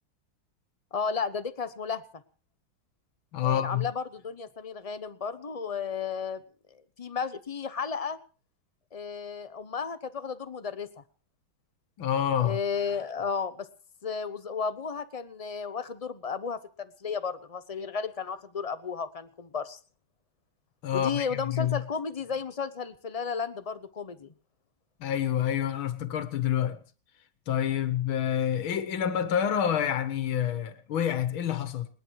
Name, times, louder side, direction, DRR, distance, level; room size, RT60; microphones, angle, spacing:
voice 1, 0.9-2.0 3.4-6.4 7.0-8.2 8.9-10.9 12.4-13.7 14.0-19.8 20.9-24.3, left 5 dB, 50° left, 0.4 m, -33 dB
voice 2, 3.3-3.9 12.0-12.6 20.8-21.8 25.0-26.8 27.5-31.9, left 9 dB, 80° left, 2.1 m, -28 dB
30.0 x 10.0 x 4.7 m
omnidirectional pair, 2.2 m